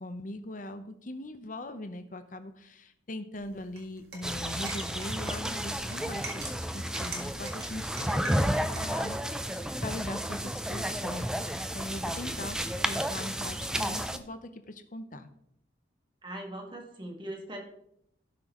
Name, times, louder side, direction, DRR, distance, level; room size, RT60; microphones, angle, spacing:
voice 1, 0.0-12.6 12.8-15.3, left 1 dB, 45° left, 9 dB, 0.8 m, -41 dB
sound 1, 3.3-8.9, right 3 dB, 55° right, 2.0 m, -45 dB
sound 2, 4.2-14.2, equal, 5° right, 0.4 m, -32 dB
voice 2, 16.2-17.6, right 1 dB, 25° right, 1 dB, 1.7 m, -40 dB
16.5 x 6.1 x 3.0 m, 0.74 s
head